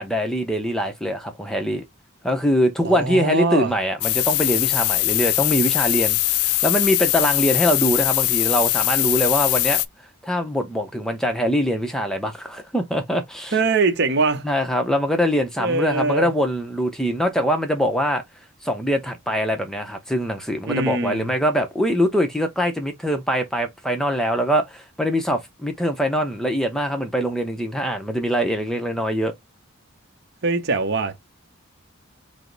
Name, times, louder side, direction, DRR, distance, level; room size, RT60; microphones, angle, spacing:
voice 1, 0.0-1.9 2.2-9.8 10.2-13.6 14.4-18.2 18.6-29.3, equal, ahead, 0.5 m, -23 dB
voice 2, 2.8-3.7 13.5-14.5 15.6-16.3 20.7-21.3 30.4-31.2, right 3 dB, 50° right, 0.8 m, -22 dB
sound 1, 4.0-9.9, left 16 dB, 85° left, 0.4 m, -21 dB
4.9 x 2.0 x 3.8 m
head